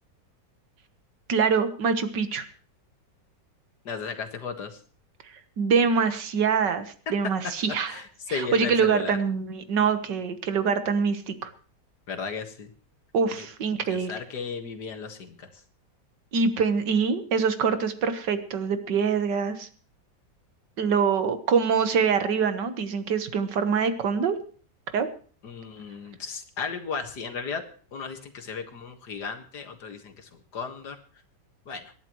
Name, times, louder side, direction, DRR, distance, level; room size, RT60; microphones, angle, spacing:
voice 1, 1.3-2.4 5.6-8.0 8.3-11.5 13.1-14.1 16.3-19.7 20.8-24.4 24.9-25.1, right 5 dB, 85° right, 10 dB, 2.0 m, -24 dB
voice 2, 3.9-4.7 7.9-9.2 12.1-12.7 13.4-13.5 13.9-15.5 25.4-27.6 27.9-31.0 31.7-31.8, left 5 dB, 70° left, 6 dB, 2.2 m, -35 dB
26.0 x 11.0 x 3.1 m, 0.43 s
omnidirectional pair, 1.9 m